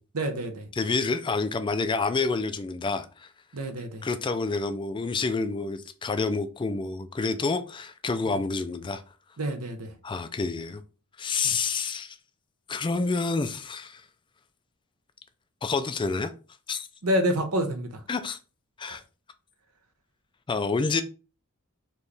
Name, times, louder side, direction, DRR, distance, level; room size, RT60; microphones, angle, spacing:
voice 1, 0.1-0.7 3.5-4.0 8.3-8.4 9.4-9.9 11.4-11.5 17.0-18.0 18.9-19.0, equal, 80° right, 0.9 m, -28 dB
voice 2, 0.7-3.3 4.0-9.0 10.0-10.8 11.2-12.2 12.7-14.0 15.6-16.3 16.7-16.9 18.1-18.4 18.8-19.0 20.5-21.0, left 4 dB, 20° left, 0.4 m, -28 dB
4.4 x 3.0 x 3.3 m
head